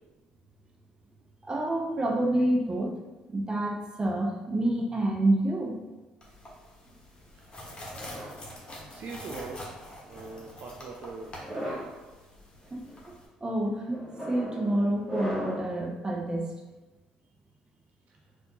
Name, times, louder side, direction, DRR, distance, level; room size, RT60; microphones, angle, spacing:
voice 1, 1.4-3.0 3.3-5.8 12.7-12.8 13.4-16.5, right 1 dB, 25° right, 1 dB, 0.7 m, -28 dB
sound 1, 6.2-13.3, left 1 dB, 30° left, 1.2 m, -46 dB
sound 2, 7.9-9.3 10.1-10.5 11.3-12.0 12.6-12.9 13.9-15.8, equal, 5° right, 1.4 m, -38 dB
voice 2, 8.1-8.5 8.9-9.6 10.0-11.8 18.1-18.2, right 4 dB, 55° right, 0 dB, 0.4 m, -42 dB
4.1 x 2.6 x 2.9 m, 1.1 s
hypercardioid pair, 60°, 3 cm